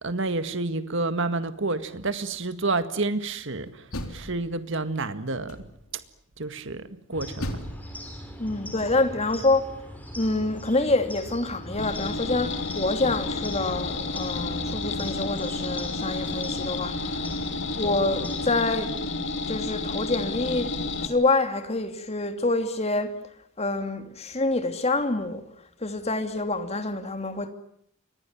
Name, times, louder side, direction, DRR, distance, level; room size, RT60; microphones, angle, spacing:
voice 1, 0.0-5.6 5.9-6.0 6.4-7.6, right 3 dB, 60° right, 1.9 m, -29 dB
Door, 3.7-4.9 5.5-6.0 7.4-9.3, left 1 dB, 85° left, 3.7 m, -38 dB
sound 1, 7.1-18.5, equal, 5° left, 5.8 m, -40 dB
voice 2, 8.4-9.6 10.2-17.4 17.7-18.9 19.5-20.7 21.0-23.1 23.6-25.4 25.8-27.5, left 2 dB, 30° left, 2.7 m, -26 dB
sound 2, 11.8-21.1, left 3 dB, 60° left, 2.7 m, -31 dB
29.5 x 24.0 x 7.4 m
head